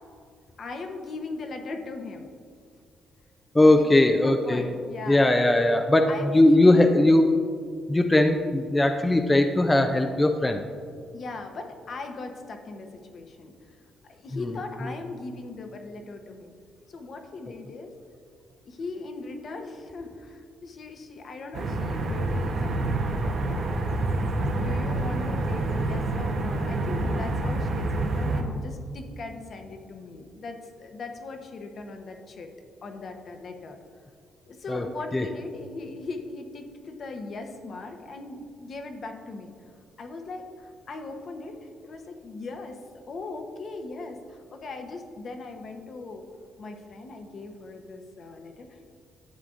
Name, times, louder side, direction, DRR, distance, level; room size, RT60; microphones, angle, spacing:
voice 1, 0.6-2.3 3.7-5.3 6.1-7.1 11.1-13.8 14.0-16.6 16.9-18.0 18.6-23.9 24.5-32.5 32.8-33.8 34.5-39.5 40.0-42.8 43.1-46.3 46.6-48.8, left 3 dB, 55° left, 4 dB, 0.9 m, -39 dB
voice 2, 3.5-4.7 5.1-7.2 7.9-10.6 14.3-14.5 34.7-34.8 35.1-35.3, left 1 dB, 15° left, 5 dB, 0.4 m, -20 dB
sound 1, 21.5-28.4, right 2 dB, 60° right, 1.0 m, -27 dB
11.5 x 7.4 x 2.5 m, 2.2 s
cardioid pair, 90°, 0 cm